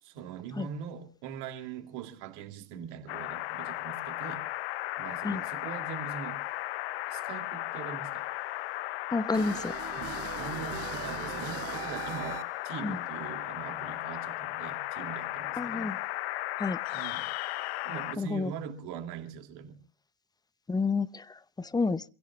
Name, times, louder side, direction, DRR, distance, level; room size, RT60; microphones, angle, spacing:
voice 1, 0.0-4.4 5.0-6.4 7.1-8.3 9.9-16.0 16.9-17.3 17.8-19.8, right 7 dB, 70° right, 2.7 m, -42 dB
sound 1, 3.1-18.2, left 17 dB, 80° left, 0.8 m, -36 dB
voice 2, 9.1-9.7 12.8-13.0 15.6-16.0 16.6-16.8 18.2-18.5 20.7-22.0, left 4 dB, 15° left, 0.7 m, -30 dB
sound 2, 9.3-12.7, right 16 dB, 50° right, 0.7 m, -40 dB
28.0 x 16.5 x 2.4 m
hypercardioid pair, 80°, 31 cm